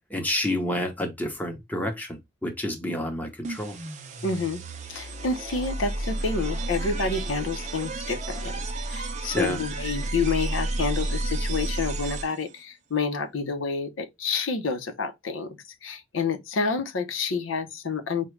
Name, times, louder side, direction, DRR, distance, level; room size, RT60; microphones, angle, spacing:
voice 1, 0.1-3.8 9.3-9.6, left 1 dB, 10° left, 0.8 m, -29 dB
sound 1, 3.4-12.6, right 1 dB, 40° right, 0.6 m, -31 dB
voice 2, 4.2-4.6 4.9-8.6 8.9-15.6 15.8-18.3, left 4 dB, 80° left, 0.7 m, -29 dB
4.9 x 2.2 x 3.1 m
head